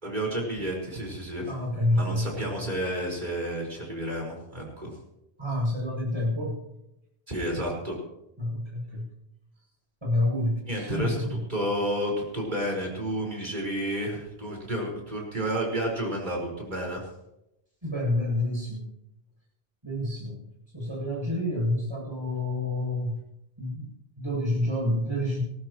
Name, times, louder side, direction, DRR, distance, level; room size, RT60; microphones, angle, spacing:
voice 1, 0.0-1.5 1.9-4.9 7.3-8.0 10.7-11.2 11.5-17.0, right 1 dB, 45° right, -2 dB, 5.3 m, -31 dB
voice 2, 1.5-2.3 5.4-6.6 8.4-9.0 10.0-11.4 17.8-18.9 19.8-20.4 20.7-23.2 23.6-23.9 24.2-25.4, left 1 dB, 25° right, -4 dB, 8.1 m, -28 dB
19.5 x 18.5 x 3.1 m, 0.85 s
omnidirectional pair, 1.1 m